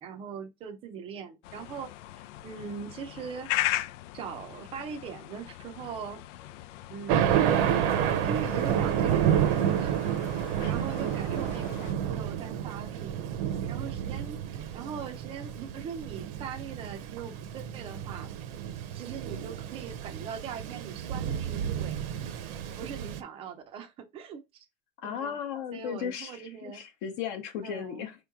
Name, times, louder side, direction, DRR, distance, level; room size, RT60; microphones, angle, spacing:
voice 1, 0.0-1.9 2.4-3.5 4.1-6.2 6.9-7.5 8.2-10.0 10.6-13.2 13.6-18.3 18.9-22.0 22.6-24.7 25.0-25.4 25.7-26.8 27.6-28.1, right 6 dB, 15° right, 0.5 m, -40 dB
sound 1, 1.4-11.9, left 14 dB, 85° left, 0.5 m, -38 dB
Thunder, 7.1-23.2, right 9 dB, 50° right, 0.8 m, -30 dB
voice 2, 25.0-28.2, left 8 dB, 45° left, 0.8 m, -36 dB
4.9 x 3.1 x 3.5 m
supercardioid pair, 175°, 36 cm